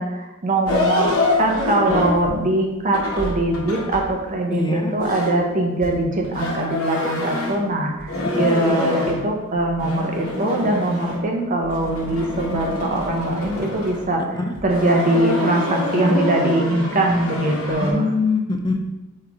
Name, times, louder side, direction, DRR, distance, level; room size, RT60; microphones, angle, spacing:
voice 1, 0.0-14.2 14.6-18.1, right 1 dB, 35° right, 0 dB, 1.0 m, -22 dB
sound 1, 0.7-4.2 5.0-7.7 8.0-9.2 9.6-11.4 11.6-14.0 14.5-17.9, left 2 dB, 65° left, 1.3 m, -25 dB
voice 2, 4.5-4.9 8.2-8.3 14.3-14.5 17.8-18.8, left 3 dB, 20° left, 4 dB, 0.6 m, -22 dB
7.8 x 3.3 x 3.6 m, 1.0 s
head